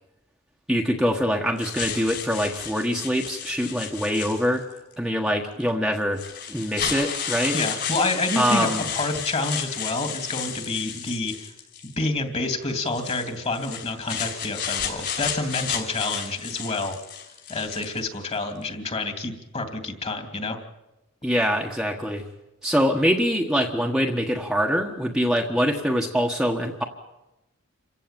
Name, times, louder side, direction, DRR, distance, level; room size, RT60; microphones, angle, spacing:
voice 1, 0.7-4.6 5.0-6.2 6.5-7.6 8.3-8.8 21.2-22.2 22.6-26.8, equal, 5° right, 0 dB, 1.4 m, -24 dB
sound 1, 1.6-4.8 5.6-5.7 6.2-11.9 12.9-18.1, left 8 dB, 55° left, 5.8 m, -32 dB
voice 2, 7.5-11.3 12.0-16.9 17.5-20.6, left 2 dB, 30° left, 6 dB, 2.8 m, -28 dB
28.0 x 16.0 x 9.0 m, 0.98 s
head